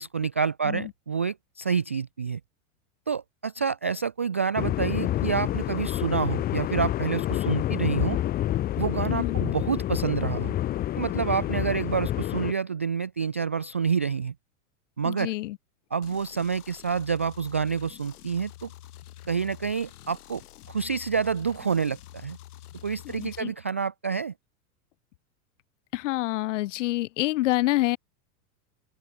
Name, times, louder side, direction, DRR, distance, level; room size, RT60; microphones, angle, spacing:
voice 1, 0.0-2.4 3.1-8.2 8.8-10.6 11.0-14.3 15.0-15.3 15.9-18.7 19.3-20.4 20.7-22.4 22.8-24.3, right 6 dB, 10° right, 0.3 m, -28 dB
sound 1, 4.6-12.5, left 13 dB, 20° left, 2.6 m, -28 dB
voice 2, 9.1-9.4 15.0-15.6 23.1-23.5 25.9-28.0, left 17 dB, 50° left, 4.0 m, -27 dB
sound 2, 16.0-23.4, left 13 dB, 75° left, 7.0 m, -47 dB
open air
supercardioid pair, 180°, 45 cm